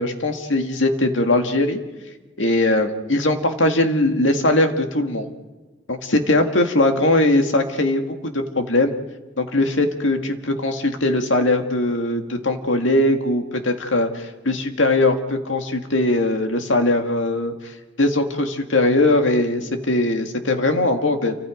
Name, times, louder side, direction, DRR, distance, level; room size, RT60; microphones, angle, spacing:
voice 1, 0.0-1.8 2.4-5.3 5.9-8.9 9.4-21.4, left 2 dB, 90° left, 5 dB, 2.1 m, -20 dB
29.0 x 25.0 x 5.2 m, 1.3 s
head